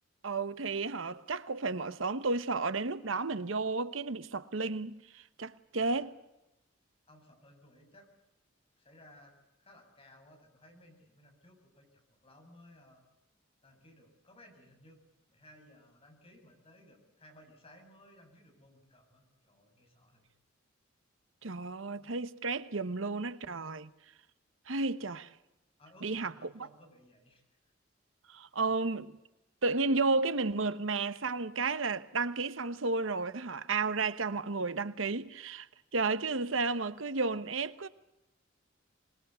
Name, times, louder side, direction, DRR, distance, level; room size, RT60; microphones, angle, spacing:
voice 1, 0.2-6.1 21.4-23.9 24.7-25.3 26.0-26.7 28.3-29.2 29.6-35.7 35.9-37.9, right 3 dB, 80° right, 1.1 m, -32 dB
voice 2, 7.1-8.1 8.8-13.0 13.6-15.0 15.3-20.2 25.8-27.4, left 1 dB, 30° left, 7.1 m, -59 dB
26.0 x 21.0 x 8.2 m
head